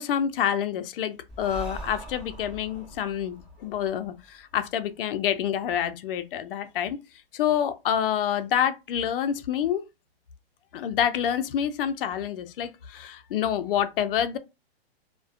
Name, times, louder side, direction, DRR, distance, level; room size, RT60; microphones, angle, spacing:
voice 1, 0.0-7.0 7.3-9.8 10.7-14.4, left 9 dB, 60° left, 0.5 m, -27 dB
Breathing, 1.3-4.8, right 1 dB, ahead, 1.4 m, -42 dB
2.4 x 2.1 x 2.4 m
hypercardioid pair, 150°, 31 cm